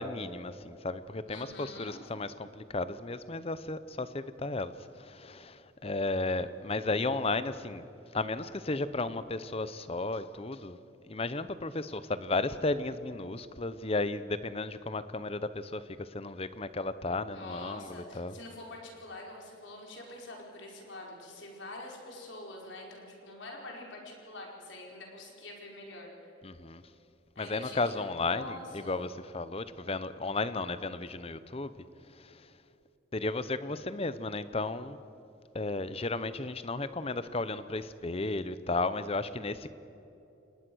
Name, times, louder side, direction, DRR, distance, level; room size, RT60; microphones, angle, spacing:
voice 1, 0.0-7.9 8.1-10.8 11.0-18.3 26.4-26.8 27.4-29.1 29.3-31.7 32.1-32.5 33.1-35.0 35.5-39.7, left 3 dB, 30° left, 14 dB, 0.8 m, -34 dB
voice 2, 1.3-2.0 17.3-26.3 27.3-29.0, left 2 dB, 70° left, -1 dB, 4.9 m, -45 dB
28.0 x 19.5 x 6.3 m, 3.0 s
head